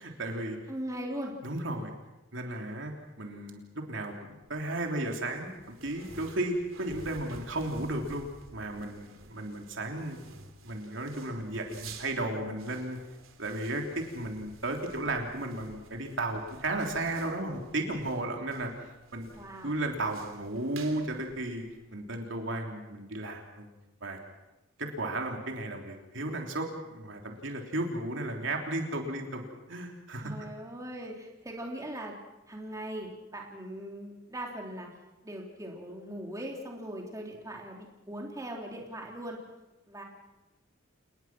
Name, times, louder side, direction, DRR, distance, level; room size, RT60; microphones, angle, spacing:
voice 1, 0.0-0.6 1.4-1.9 2.3-2.9 3.2-8.3 8.5-10.3 10.6-13.0 13.4-18.7 19.1-19.3 19.6-21.6 21.9-23.7 24.0-24.2 24.8-29.4 29.7-30.3, right 2 dB, 65° right, 2 dB, 3.4 m, -34 dB
voice 2, 0.7-1.3 19.3-19.7 30.2-32.2 32.5-34.9 35.2-39.4 39.9-40.0, right 1 dB, 15° right, 0 dB, 3.5 m, -40 dB
sound 1, 4.3-22.1, right 4 dB, 85° right, 3.1 m, -52 dB
29.0 x 20.0 x 6.1 m, 1.0 s
head